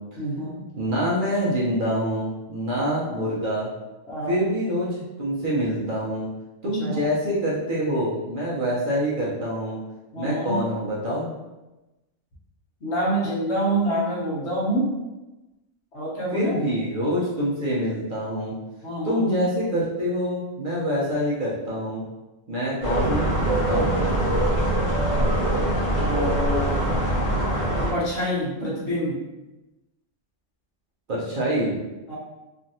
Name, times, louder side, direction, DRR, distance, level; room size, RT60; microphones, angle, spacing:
voice 1, 0.2-0.6 2.7-3.1 4.1-4.4 6.8-7.0 10.1-10.6 12.8-14.9 15.9-16.5 18.8-19.3 25.8-26.9 27.9-29.2 32.1-32.2, right 1 dB, 65° left, -6 dB, 1.2 m, -27 dB
voice 2, 0.8-3.7 4.3-6.3 6.6-9.8 10.2-11.3 16.3-18.6 19.0-22.0 22.5-24.0 31.1-31.8, equal, 50° right, -7 dB, 0.8 m, -26 dB
sound 1, 22.8-27.9, right 1 dB, 45° left, 0.9 m, -23 dB
3.0 x 2.5 x 2.7 m, 1.0 s
omnidirectional pair, 1.2 m